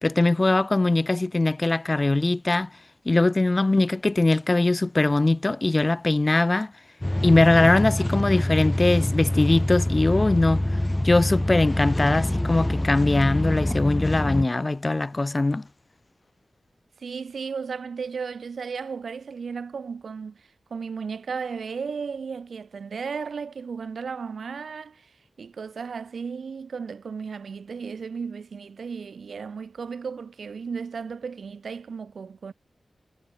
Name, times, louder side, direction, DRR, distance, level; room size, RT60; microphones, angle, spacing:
voice 1, 0.0-2.7 3.0-6.7 7.2-10.6 11.0-15.7, left 2 dB, 35° left, 0.8 m, -21 dB
sound 1, 7.0-14.5, left 1 dB, 15° left, 1.7 m, -25 dB
voice 2, 17.0-25.1 25.4-32.5, right 5 dB, 75° right, 5.4 m, -34 dB
cardioid pair, 45°, 0 cm